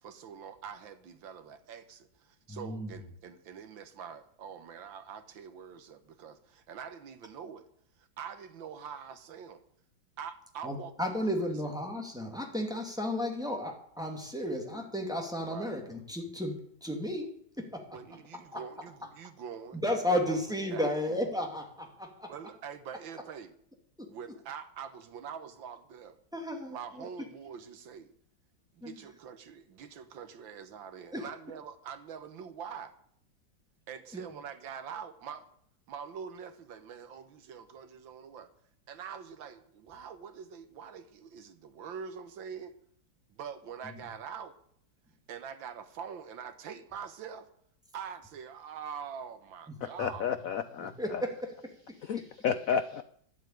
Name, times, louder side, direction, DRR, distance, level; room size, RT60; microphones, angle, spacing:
voice 1, 0.0-7.7 8.0-9.6 10.2-10.9 11.4-11.5 14.4-14.8 15.4-15.7 17.9-19.8 20.3-20.4 20.7-20.9 22.3-23.5 24.1-26.2 26.7-28.1 28.7-32.9 33.9-35.5 35.9-38.5 38.9-42.7 43.3-44.6 45.3-47.5 47.9-50.3, right 7 dB, 70° right, 1.8 m, -44 dB
voice 2, 2.5-2.9 10.6-17.9 18.5-18.6 19.0-19.1 19.7-22.3 24.0-24.1 26.3-27.0 28.8-28.9 31.1-31.3 34.1-34.2 49.7-49.8 50.8-52.3, left 1 dB, ahead, 2.2 m, -34 dB
voice 3, 49.8-50.9 52.0-53.0, left 7 dB, 75° left, 0.7 m, -31 dB
11.5 x 8.2 x 9.1 m
omnidirectional pair, 2.2 m